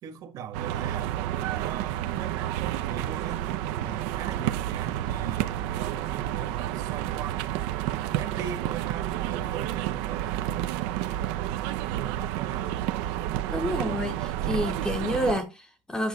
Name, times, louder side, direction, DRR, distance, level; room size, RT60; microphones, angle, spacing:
voice 1, 0.0-1.2 1.5-3.4 3.8-5.6 5.9-7.6 8.2-10.6 11.9-12.8, right 8 dB, 35° right, 1.4 m, -40 dB
sound 1, 0.5-15.4, right 13 dB, 70° right, 0.8 m, -30 dB
voice 2, 13.5-16.1, left 1 dB, 5° left, 0.9 m, -29 dB
8.9 x 5.9 x 4.1 m
cardioid pair, 170°, 10 cm